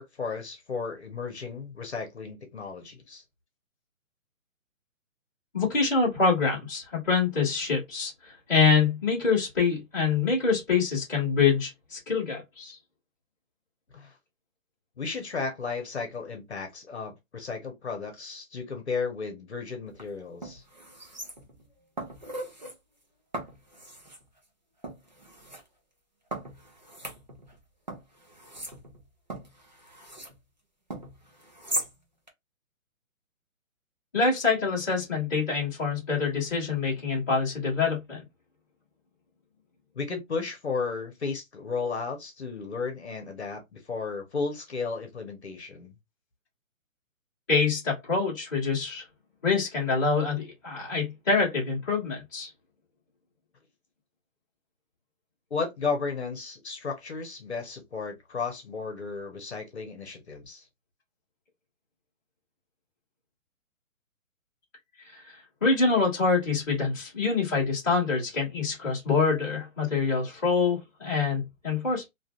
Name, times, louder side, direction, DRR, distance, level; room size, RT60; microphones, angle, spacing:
voice 1, 0.0-3.2 13.9-14.1 15.0-20.6 39.9-45.9 55.5-60.7, left 4 dB, 50° left, 1.0 m, -34 dB
voice 2, 5.5-12.8 34.1-38.2 47.5-49.0 49.4-52.5 65.1-72.1, left 4 dB, 15° left, 1.1 m, -26 dB
sound 1, 19.9-20.0 20.4-21.6 22.0-22.8 23.3-24.2 24.8-25.6 26.3-27.6 27.9-30.4 30.9-31.9 32.3-32.4, right 1 dB, 35° right, 0.5 m, -38 dB
3.2 x 2.4 x 2.4 m
hypercardioid pair, 180°, 42 cm